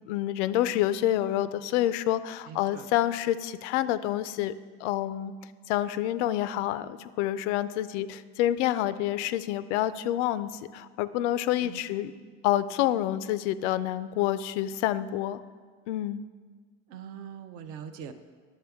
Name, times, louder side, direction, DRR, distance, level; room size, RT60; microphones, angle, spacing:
voice 1, 0.1-4.5 4.8-5.3 5.7-12.1 12.4-15.4 15.9-16.2, left 13 dB, 85° left, 15 dB, 0.5 m, -28 dB
voice 2, 2.5-2.9 11.6-11.8 16.9-18.1, right 8 dB, 40° right, 10 dB, 0.5 m, -42 dB
10.5 x 6.7 x 3.5 m, 1.5 s
cardioid pair, 160°, 34 cm